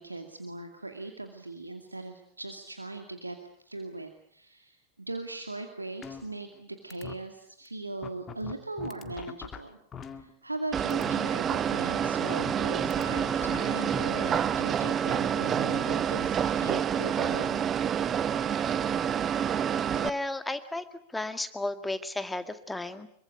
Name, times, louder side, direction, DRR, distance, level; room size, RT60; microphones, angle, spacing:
voice 1, 0.0-3.4 3.6-4.8 5.1-9.8 10.1-17.7, right 2 dB, 85° right, 6 dB, 2.3 m, -39 dB
sound 1, 6.0-6.6 6.9-7.2 7.7-7.8 8.0-10.6 10.9-11.2 12.0-14.0, left 8 dB, 20° left, 1.8 m, -42 dB
sound 2, 10.7-20.1, right 8 dB, 25° right, 1.0 m, -28 dB
voice 2, 20.0-20.8 21.1-23.1, left 2 dB, 5° left, 10 dB, 2.0 m, -33 dB
26.0 x 23.5 x 8.4 m, 0.67 s
figure-of-eight pair, 90°, 0 cm